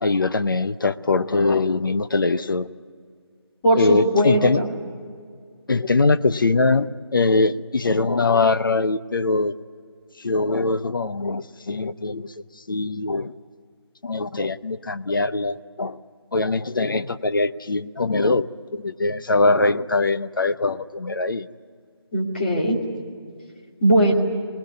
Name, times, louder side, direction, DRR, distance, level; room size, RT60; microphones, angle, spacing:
voice 1, 0.0-2.7 3.7-4.6 5.7-9.5 10.2-12.3 12.7-13.3 14.0-16.0 16.3-18.5 18.7-21.5, left 3 dB, 50° left, 12 dB, 0.8 m, -22 dB
voice 2, 3.6-4.7 22.1-22.8 23.8-24.1, right 1 dB, 20° left, -2 dB, 2.7 m, -19 dB
24.0 x 19.5 x 9.6 m, 2.1 s
figure-of-eight pair, 175°, 14 cm